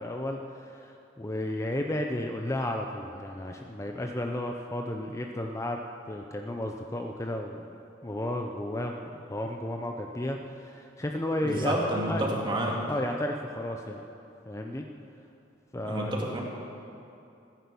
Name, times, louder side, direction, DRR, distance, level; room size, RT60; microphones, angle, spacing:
voice 1, 0.0-5.8 6.1-7.6 8.0-11.7 12.1-12.3 12.9-14.0 14.5-14.8 15.7-16.1, left 1 dB, 15° left, 3 dB, 0.6 m, -33 dB
voice 2, 11.4-12.8 15.8-16.4, right 1 dB, 25° right, -1 dB, 2.3 m, -29 dB
15.5 x 10.5 x 7.0 m, 2.8 s
head